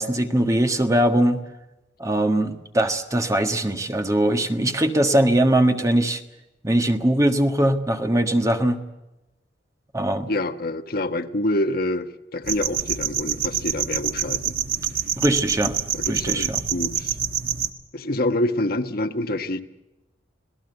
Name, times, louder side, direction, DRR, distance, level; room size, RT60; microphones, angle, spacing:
voice 1, 0.0-1.4 2.0-6.2 6.6-8.8 9.9-10.3 15.2-15.7 16.1-16.6, right 1 dB, 20° right, 6 dB, 1.5 m, -21 dB
voice 2, 10.3-14.5 15.9-17.2 17.9-19.6, left 1 dB, 55° left, 8 dB, 1.3 m, -26 dB
sound 1, 12.4-17.7, right 8 dB, 60° right, 1.7 m, -26 dB
27.0 x 17.5 x 8.0 m, 1.0 s
head